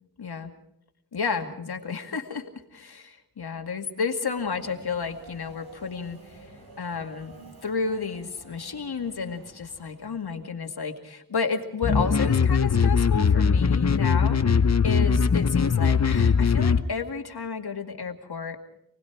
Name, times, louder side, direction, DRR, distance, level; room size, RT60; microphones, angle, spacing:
voice 1, 0.2-0.5 1.1-6.5 6.8-7.3 7.6-18.6, left 5 dB, 80° left, 4 dB, 2.3 m, -32 dB
Subway metro underground, 4.3-10.6, right 3 dB, 75° right, 4.8 m, -50 dB
sound 1, 11.8-16.8, left 6 dB, 45° left, 0.8 m, -21 dB
29.0 x 19.5 x 4.7 m, 0.79 s
wide cardioid pair, 80°, 38 cm